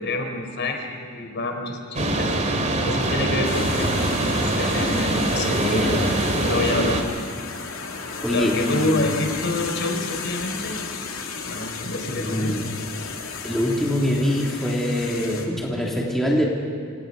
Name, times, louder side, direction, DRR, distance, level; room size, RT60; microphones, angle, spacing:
voice 1, 0.0-2.3 2.8-7.0 8.3-10.8 11.4-12.6, left 2 dB, 55° left, 4 dB, 4.2 m, -28 dB
sound 1, 1.9-7.0, right 1 dB, 35° right, 2.6 m, -23 dB
sound 2, 3.4-15.5, left 5 dB, 70° left, 3.2 m, -34 dB
voice 2, 5.5-6.2 8.2-9.1 12.2-12.6 13.4-16.4, left 1 dB, ahead, -3 dB, 3.3 m, -24 dB
27.5 x 27.0 x 5.6 m, 2.4 s
head